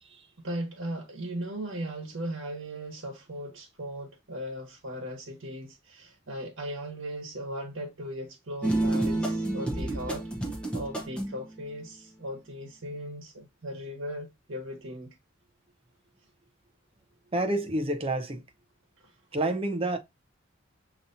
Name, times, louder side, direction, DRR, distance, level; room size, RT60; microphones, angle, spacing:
voice 1, 0.4-15.1 19.0-19.1, equal, 75° right, 1.2 m, -38 dB
sound 1, 8.6-11.4, right 1 dB, 5° left, 1.1 m, -29 dB
voice 2, 17.3-18.4 19.3-20.0, right 1 dB, 30° right, 0.5 m, -28 dB
6.6 x 2.9 x 2.6 m
head